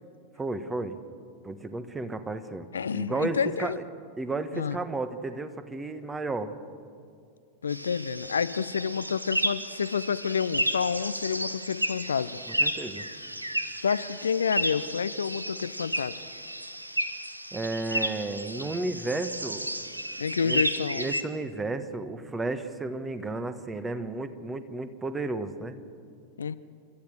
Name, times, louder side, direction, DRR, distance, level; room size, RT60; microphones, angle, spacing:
voice 1, 0.4-1.0 1.4-3.8 4.2-6.5 12.6-13.1 17.5-19.7 20.4-20.6 20.9-25.8, right 2 dB, 15° right, 11 dB, 1.3 m, -33 dB
voice 2, 2.7-3.8 4.5-4.8 7.6-12.4 13.8-16.2 20.2-21.1 26.4-26.6, left 6 dB, 70° left, 15 dB, 0.5 m, -29 dB
sound 1, 7.7-21.2, right 1 dB, 85° right, 1.1 m, -32 dB
29.5 x 13.5 x 6.4 m, 2.3 s
figure-of-eight pair, 90°, 0 cm